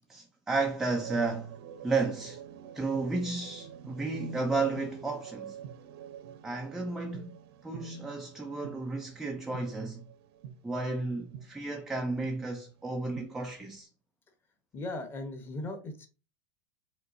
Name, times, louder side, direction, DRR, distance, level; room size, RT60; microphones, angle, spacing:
voice 1, 0.1-1.5 1.8-2.4 2.7-5.6 6.4-7.3 7.6-10.0 10.6-13.9, right 3 dB, ahead, 0.3 m, -33 dB
sound 1, 0.9-11.7 12.2-12.3 12.8-13.3, right 8 dB, 60° right, 0.7 m, -47 dB
voice 2, 14.7-16.1, left 2 dB, 15° left, 0.8 m, -38 dB
5.3 x 3.7 x 2.5 m
supercardioid pair, 175°, 15 cm